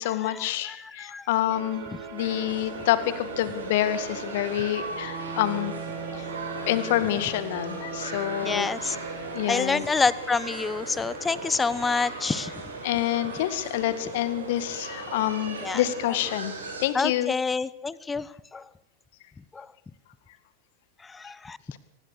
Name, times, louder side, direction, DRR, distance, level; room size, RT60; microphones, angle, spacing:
voice 1, 0.0-5.7 6.2-6.3 6.7-8.8 9.3-9.8 12.8-17.3 21.7-21.8, left 13 dB, 50° left, 13 dB, 2.0 m, -27 dB
sound 1, 1.5-9.4, right 4 dB, 50° right, 5.1 m, -39 dB
sound 2, 2.2-16.9, right 3 dB, 70° right, 6.3 m, -38 dB
voice 2, 8.4-9.0 9.5-12.5 15.6-15.8 16.9-18.3 18.5-18.6 19.5-19.7 21.1-21.6, left 4 dB, 15° left, 20 dB, 1.0 m, -27 dB
24.0 x 20.0 x 6.6 m, 0.79 s
figure-of-eight pair, 90°, 0 cm